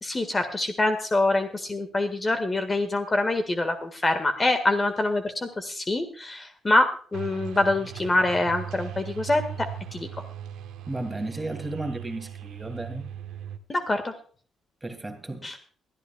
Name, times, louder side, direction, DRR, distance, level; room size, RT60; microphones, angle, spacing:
voice 1, 0.0-10.1 13.7-14.1 15.4-15.6, left 2 dB, 25° left, 1.7 m, -25 dB
sound 1, 7.1-13.6, right 9 dB, 90° right, 1.2 m, -38 dB
voice 2, 10.9-13.1 14.8-15.5, right 2 dB, 15° right, 2.5 m, -34 dB
23.0 x 12.5 x 2.3 m
cardioid pair, 90°, 0 cm